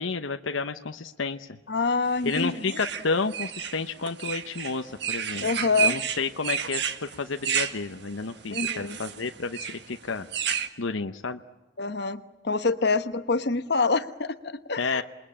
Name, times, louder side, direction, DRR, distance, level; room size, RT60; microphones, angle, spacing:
voice 1, 0.0-1.6 2.2-5.5 5.8-6.9 7.2-10.3 10.8-11.4 14.8-15.0, left 4 dB, 85° left, 7 dB, 0.9 m, -31 dB
voice 2, 1.7-2.8 5.4-6.0 8.5-9.0 11.8-15.0, left 4 dB, 55° left, 11 dB, 1.1 m, -26 dB
sound 1, 2.3-10.7, right 8 dB, 60° right, 1.7 m, -31 dB
28.0 x 21.5 x 8.8 m, 1.1 s
head